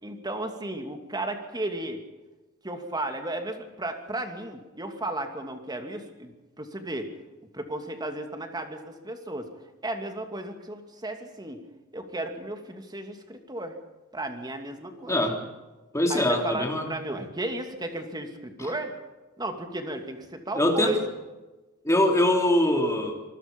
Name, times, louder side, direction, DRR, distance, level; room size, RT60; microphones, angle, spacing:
voice 1, 0.0-2.0 2.6-7.1 7.5-9.5 9.8-11.6 11.9-13.8 14.1-15.2 16.1-18.9 19.4-21.0, right 1 dB, 20° right, 5 dB, 2.6 m, -34 dB
voice 2, 15.1-15.4 15.9-16.9 18.6-18.7 20.5-20.9 21.8-23.2, left 1 dB, 15° left, 2 dB, 3.4 m, -23 dB
26.5 x 20.0 x 5.5 m, 1.1 s
head